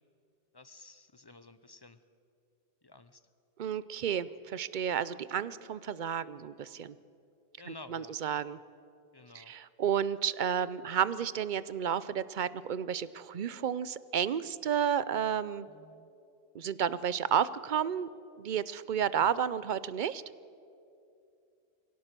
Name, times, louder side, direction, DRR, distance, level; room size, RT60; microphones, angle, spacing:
voice 1, 0.5-2.0 2.8-3.2 7.6-8.2 9.1-9.5 15.7-16.1 19.2-19.3, left 2 dB, 30° left, 13 dB, 0.6 m, -52 dB
voice 2, 3.6-6.9 7.7-8.6 9.3-15.7 16.5-18.1 18.4-20.2, right 8 dB, 55° right, 17 dB, 0.7 m, -31 dB
23.5 x 17.0 x 6.8 m, 2.6 s
omnidirectional pair, 1.1 m